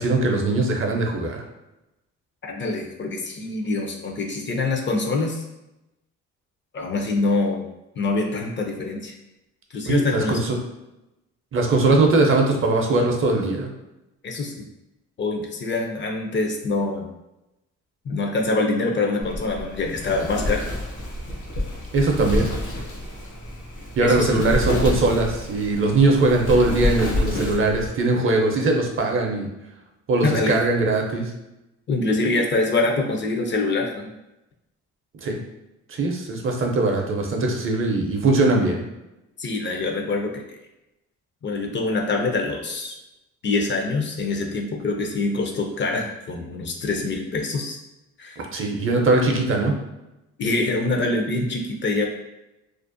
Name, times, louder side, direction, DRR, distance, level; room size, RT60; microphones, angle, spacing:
voice 1, 0.0-1.4 9.9-10.6 11.5-13.7 21.9-22.5 24.0-29.5 30.1-31.3 35.2-35.4 35.9-38.8 48.4-49.8, right 2 dB, 45° right, 1 dB, 0.5 m, -21 dB
voice 2, 2.4-5.4 6.7-7.7 8.0-9.1 9.7-10.4 11.8-12.0 14.2-14.7 15.2-17.1 18.0-20.7 24.0-24.4 30.2-30.6 31.9-34.1 39.4-40.4 41.4-42.9 43.4-47.8 48.2-48.4 50.4-52.1, left 3 dB, 40° left, 1 dB, 0.4 m, -25 dB
Wind, 19.2-27.9, left 1 dB, 75° left, 0.7 m, -28 dB
2.5 x 2.0 x 2.5 m, 0.94 s
cardioid pair, 90°, 30 cm